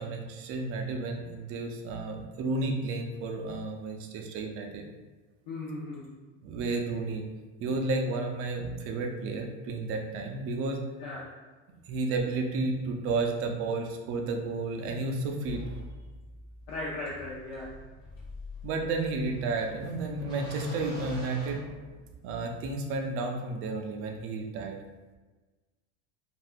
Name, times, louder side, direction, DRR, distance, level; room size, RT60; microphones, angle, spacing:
voice 1, 0.0-4.8 6.4-7.2 7.6-10.8 11.9-15.6 18.6-21.6 22.2-24.8, right 3 dB, 40° right, 2 dB, 0.4 m, -32 dB
voice 2, 5.5-6.1 11.0-11.3 16.7-17.8, left 2 dB, 60° left, -6 dB, 0.7 m, -37 dB
sound 1, 15.5-22.4, equal, 10° left, 0.7 m, -44 dB
2.6 x 2.4 x 3.4 m, 1.3 s
cardioid pair, 160°, 34 cm